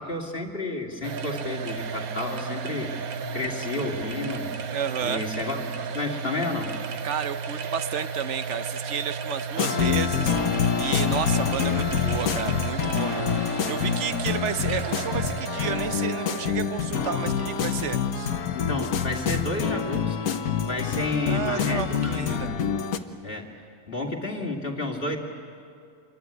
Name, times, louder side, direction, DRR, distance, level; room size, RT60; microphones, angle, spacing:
voice 1, 0.0-2.9 3.3-4.6 5.0-6.7 18.5-22.5 23.2-23.6 23.9-25.2, left 2 dB, 40° left, 1 dB, 2.6 m, -31 dB
sound 1, 1.0-19.7, right 5 dB, 90° right, 1.5 m, -34 dB
voice 2, 4.7-5.3 7.0-10.4 10.8-18.3 21.2-22.5, right 8 dB, 60° right, 12 dB, 1.1 m, -32 dB
sound 2, 9.6-23.0, left 7 dB, 80° left, 1.5 m, -26 dB
26.5 x 22.0 x 9.6 m, 2.3 s
omnidirectional pair, 1.5 m